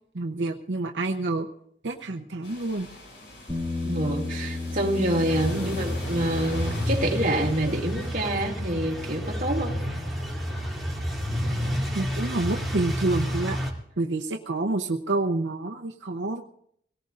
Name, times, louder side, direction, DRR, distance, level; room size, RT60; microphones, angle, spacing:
voice 1, 0.1-1.5 1.8-2.9 5.5-5.7 11.9-13.6 14.0-16.4, right 2 dB, 85° right, 0.8 m, -28 dB
sound 1, 2.4-8.1, left 1 dB, 85° left, 7.4 m, -42 dB
Bass guitar, 3.5-9.7, left 3 dB, 20° left, 2.3 m, -35 dB
voice 2, 3.8-9.8, right 1 dB, 45° right, 2.5 m, -27 dB
sound 2, 5.3-13.7, equal, ahead, 2.6 m, -30 dB
24.5 x 18.0 x 2.6 m
head